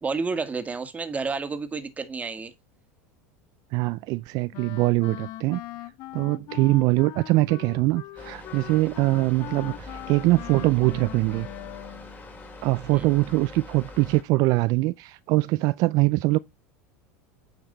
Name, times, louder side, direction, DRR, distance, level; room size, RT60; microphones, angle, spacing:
voice 1, 0.0-2.5 12.9-13.1, right 4 dB, 20° right, 1.7 m, -30 dB
voice 2, 3.7-5.6 6.1-11.5 12.6-16.4, right 21 dB, 55° right, 0.4 m, -23 dB
Wind instrument woodwind instrument, 4.5-12.1, left 16 dB, 55° left, 0.8 m, -40 dB
sound 1, 8.2-14.2, left 1 dB, 20° left, 2.8 m, -43 dB
8.9 x 5.2 x 3.9 m
hypercardioid pair, 105°, 8 cm